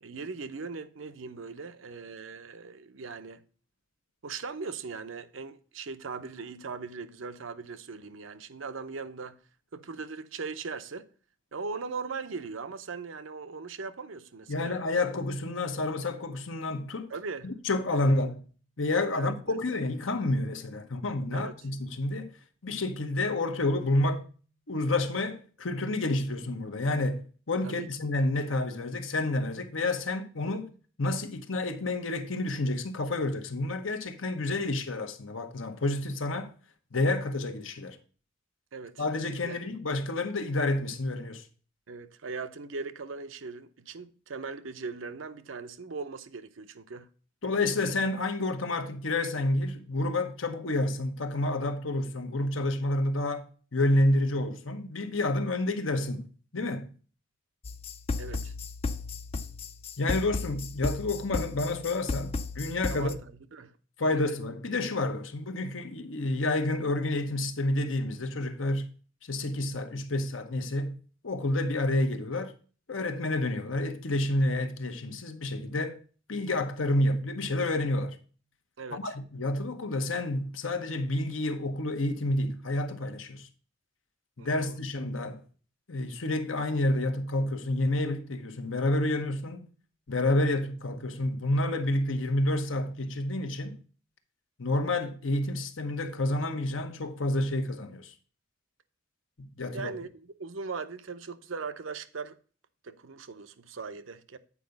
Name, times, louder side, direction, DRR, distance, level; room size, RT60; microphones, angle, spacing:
voice 1, 0.0-3.4 4.2-9.4 9.7-11.1 11.5-14.8 17.1-17.5 17.9-18.1 19.1-19.6 21.3-21.6 27.6-27.9 30.5-30.6 38.7-39.0 39.4-39.6 41.9-47.1 58.2-58.5 62.9-64.2 78.8-79.1 84.4-84.8 99.7-102.4 102.8-104.4, right 4 dB, 80° right, 0.7 m, -39 dB
voice 2, 14.5-17.1 17.4-18.4 18.8-24.3 24.7-30.7 31.0-36.5 36.9-38.0 39.0-41.4 47.4-56.9 60.0-63.1 64.0-68.9 69.2-71.0 71.2-72.5 72.9-76.0 76.3-78.2 78.9-83.5 84.4-85.4 85.9-89.6 90.1-93.8 94.6-98.1 99.4-99.9, left 2 dB, 80° left, 1.0 m, -29 dB
sound 1, 57.6-63.1, left 3 dB, 30° left, 0.4 m, -35 dB
8.3 x 4.7 x 5.2 m
head